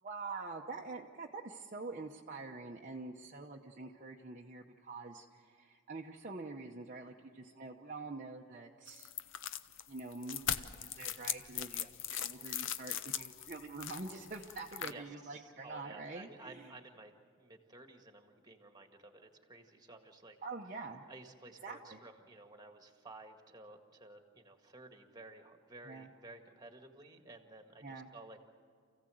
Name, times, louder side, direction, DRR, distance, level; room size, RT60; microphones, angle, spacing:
voice 1, 0.0-9.1 9.9-11.9 12.2-16.7 20.4-21.1 21.6-22.0 25.8-26.1 27.8-28.1, right 3 dB, 35° right, 0 dB, 0.9 m, -46 dB
sound 1, 8.9-14.9, left 10 dB, 60° left, 0.7 m, -40 dB
voice 2, 14.7-17.1 17.4-20.4 21.1-28.5, right 2 dB, 20° right, 5 dB, 1.8 m, -54 dB
28.5 x 16.0 x 7.8 m, 2.2 s
head